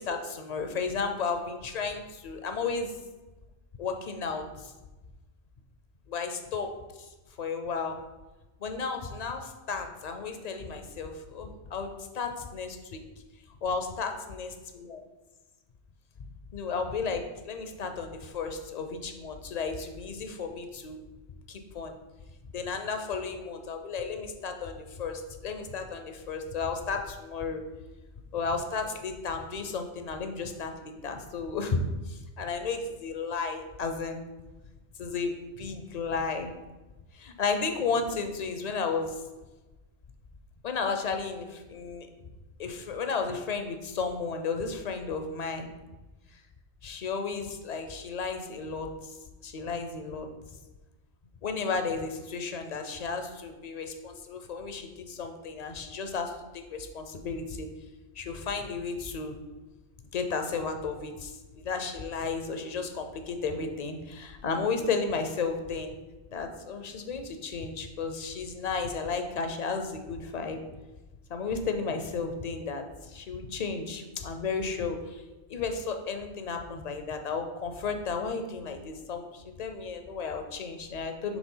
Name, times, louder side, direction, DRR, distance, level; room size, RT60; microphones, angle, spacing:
voice 1, 0.0-2.9 3.8-4.7 6.1-7.1 7.4-8.0 8.6-13.0 13.6-14.5 14.9-15.0 16.5-21.0 21.5-21.9 22.5-27.6 28.3-34.2 35.0-36.5 37.1-39.2 40.6-42.1 42.6-45.7 46.8-49.2 49.4-50.3 51.4-56.4 56.7-57.7 58.2-59.4 60.1-61.4 61.6-66.0 66.3-70.6 71.3-75.2 75.5-81.4, left 4 dB, 50° left, 6 dB, 0.5 m, -33 dB
5.1 x 3.4 x 5.4 m, 1.2 s
omnidirectional pair, 1.2 m